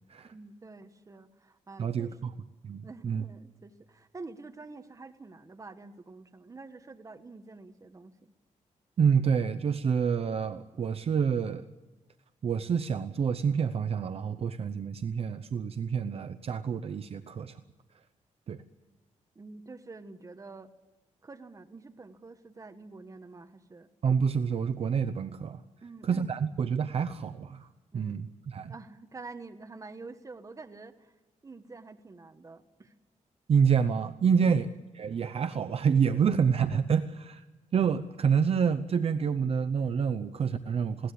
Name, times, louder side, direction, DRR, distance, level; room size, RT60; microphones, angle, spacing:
voice 1, 0.2-2.3 2.8-8.3 19.3-20.7 21.2-23.9 25.8-26.3 27.9-28.2 28.7-31.2 31.4-32.9, right 3 dB, 25° right, 7 dB, 1.4 m, -47 dB
voice 2, 1.8-2.3 2.6-3.2 9.0-11.7 12.4-17.6 18.5-18.6 24.0-25.6 26.0-27.7 27.9-28.7 33.5-34.7 35.0-37.4 37.7-41.1, right 6 dB, 50° right, 9 dB, 0.7 m, -28 dB
20.5 x 17.5 x 8.5 m, 1.1 s
wide cardioid pair, 140°, 13 cm